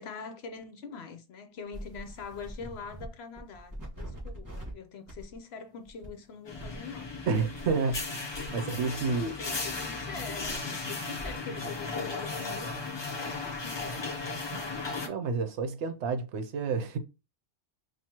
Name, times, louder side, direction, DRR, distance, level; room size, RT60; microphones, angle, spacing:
voice 1, 0.0-7.1 9.0-12.8 13.2-14.1, left 5 dB, 65° left, 0.8 m, -44 dB
sound 1, 1.7-3.1 3.4-4.7 5.1-5.3 5.8-6.1 6.5-8.0 8.3-11.4, equal, 15° right, 1.7 m, -45 dB
sound 2, 6.5-15.1, left 3 dB, 35° left, 0.4 m, -36 dB
voice 2, 7.3-8.3 8.5-9.3 14.5-14.6 15.0-17.0, right 4 dB, 70° right, 0.9 m, -30 dB
6.0 x 2.4 x 2.8 m
omnidirectional pair, 1.3 m